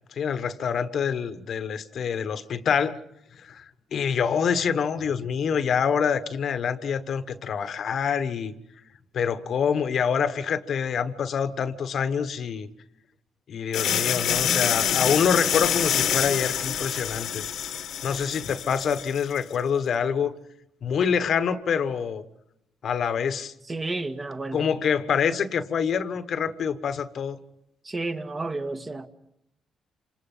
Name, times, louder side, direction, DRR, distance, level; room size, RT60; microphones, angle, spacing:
voice 1, 0.1-3.0 3.4-3.6 3.9-8.5 9.1-12.7 13.5-17.4 18.0-20.3 20.8-22.2 22.8-23.5 24.5-27.4, left 7 dB, 60° left, 12 dB, 1.4 m, -26 dB
sound 1, 13.7-19.4, left 9 dB, 75° left, 1.6 m, -26 dB
voice 2, 23.7-24.7 27.8-29.1, right 2 dB, 25° right, 7 dB, 1.9 m, -31 dB
27.5 x 26.5 x 5.7 m, 0.81 s
cardioid pair, 90°, 0 cm